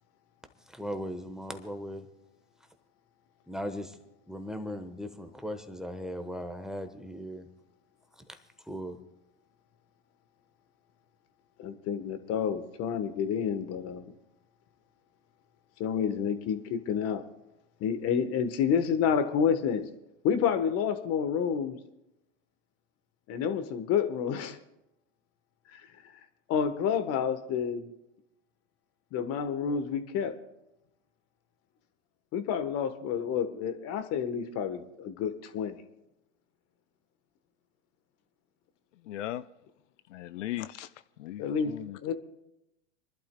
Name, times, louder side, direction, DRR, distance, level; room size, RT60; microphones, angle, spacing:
voice 1, 0.7-2.1 3.5-4.0 4.3-7.5 8.7-9.0, equal, ahead, 1.1 m, -38 dB
voice 2, 11.6-14.1 15.8-17.2 17.8-19.8 20.2-21.8 23.3-24.6 25.7-25.8 26.5-27.9 29.1-30.3 32.3-35.8 41.4-41.7 42.0-42.1, left 7 dB, 40° left, 1.2 m, -29 dB
voice 3, 39.0-39.4 40.1-40.9 41.2-42.0, left 14 dB, 75° left, 0.5 m, -37 dB
28.5 x 11.5 x 2.2 m
hypercardioid pair, 105°, 37 cm